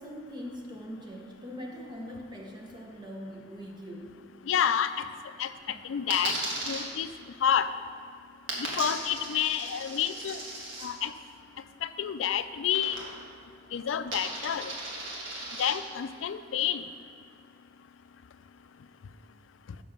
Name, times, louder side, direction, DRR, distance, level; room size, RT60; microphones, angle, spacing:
voice 1, 0.0-4.2 5.7-5.8 9.6-9.7 10.2-10.3, equal, 25° right, 0 dB, 1.0 m, -42 dB
voice 2, 4.5-5.1 5.4-5.5 5.8-6.4 6.7-7.1 7.4-7.7 8.6-10.4 10.8-11.1 11.8-13.0 13.7-14.7 15.6-16.8, left 9 dB, 90° left, 12 dB, 0.4 m, -29 dB
Coin (dropping), 6.1-6.8 8.5-10.9 12.7-13.4 13.6-15.7, right 2 dB, 80° right, 1.7 m, -37 dB
7.1 x 6.1 x 5.9 m, 2.2 s
head